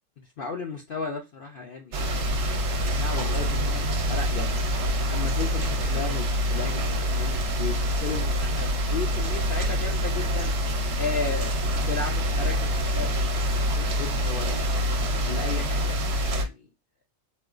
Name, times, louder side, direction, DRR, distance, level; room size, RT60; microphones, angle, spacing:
voice 1, 0.2-2.0 2.7-4.6 5.1-10.5 11.0-14.7 15.2-16.7, left 4 dB, 60° left, 0.6 m, -35 dB
sound 1, 1.9-16.4, equal, 65° right, 1.0 m, -26 dB
4.1 x 2.2 x 2.4 m
omnidirectional pair, 1.4 m